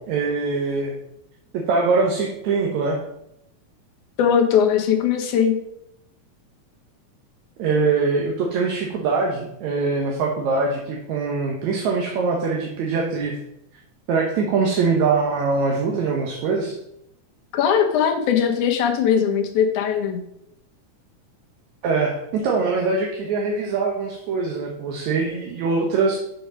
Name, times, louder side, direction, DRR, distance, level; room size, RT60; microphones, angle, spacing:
voice 1, 0.1-1.0 1.7-3.0 7.6-13.4 14.1-16.8 21.8-26.2, right 4 dB, 75° right, 0 dB, 2.4 m, -23 dB
voice 2, 4.2-5.6 17.5-20.2, left 7 dB, 80° left, 5 dB, 2.5 m, -20 dB
7.7 x 5.0 x 6.3 m, 0.79 s
omnidirectional pair, 3.4 m